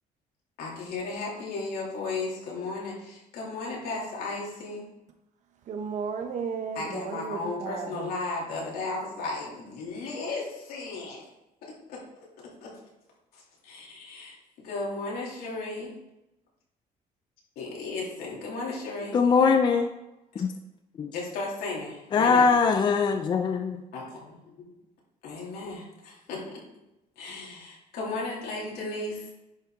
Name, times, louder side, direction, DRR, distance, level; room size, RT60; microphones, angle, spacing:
voice 1, 0.6-4.8 6.7-11.3 11.6-12.7 13.3-15.9 17.6-19.2 21.1-22.5 23.9-24.6 25.2-26.6 27.2-29.3, left 3 dB, 80° left, 3.2 m, -35 dB
voice 2, 5.7-8.1, right 6 dB, 50° right, 0.9 m, -34 dB
voice 3, 19.1-19.9 20.4-20.5 21.0-21.1 22.1-23.8, left 5 dB, 30° left, 0.4 m, -22 dB
10.5 x 5.7 x 3.8 m
cardioid pair, 160°, 16 cm